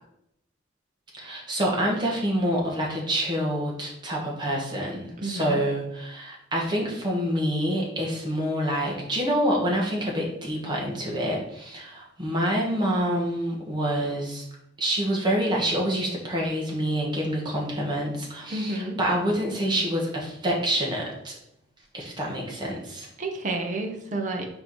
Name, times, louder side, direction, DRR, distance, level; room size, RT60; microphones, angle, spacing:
voice 1, 1.1-14.4 14.8-21.3 21.9-23.1, equal, 25° right, -2 dB, 1.5 m, -27 dB
voice 2, 5.2-5.6 18.5-19.0 23.2-24.5, right 2 dB, 40° right, 3 dB, 0.8 m, -30 dB
4.7 x 4.4 x 4.7 m, 0.77 s
head